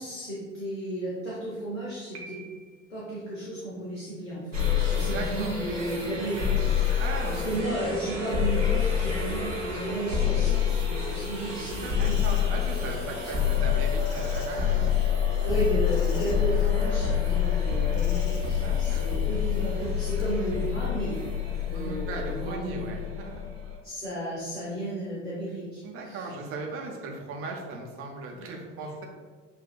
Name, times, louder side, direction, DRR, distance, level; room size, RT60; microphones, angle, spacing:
voice 1, 0.0-2.4 2.9-6.5 7.3-12.4 12.8-13.0 13.2-13.4 15.4-21.2 21.6-22.8 23.8-26.2 28.3-28.4, right 1 dB, 80° left, -8 dB, 1.1 m, -33 dB
Piano, 2.1-3.1, right 4 dB, 65° right, 0.8 m, -47 dB
sound 1, 4.5-23.8, left 8 dB, 90° right, 1.1 m, -27 dB
voice 2, 4.9-5.5 7.0-7.7 11.7-15.5 18.6-19.1 21.7-23.4 25.8-29.0, right 3 dB, 35° right, 0 dB, 0.9 m, -38 dB
Insect, 12.0-20.4, left 7 dB, 50° left, 0.8 m, -43 dB
7.1 x 2.7 x 2.3 m, 1.5 s
figure-of-eight pair, 70°, 37 cm